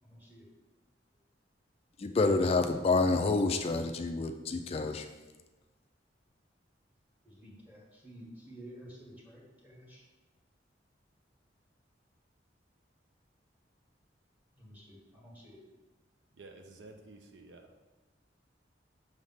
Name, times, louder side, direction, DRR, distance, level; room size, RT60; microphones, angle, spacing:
voice 1, 0.0-0.5 2.4-3.0 7.2-10.1 14.6-15.7, equal, 10° right, -4 dB, 1.4 m, -52 dB
voice 2, 2.0-5.1, left 3 dB, 35° left, 6 dB, 0.3 m, -28 dB
voice 3, 16.3-17.7, right 2 dB, 80° right, 5 dB, 0.6 m, -52 dB
6.4 x 3.3 x 5.5 m, 1.1 s
head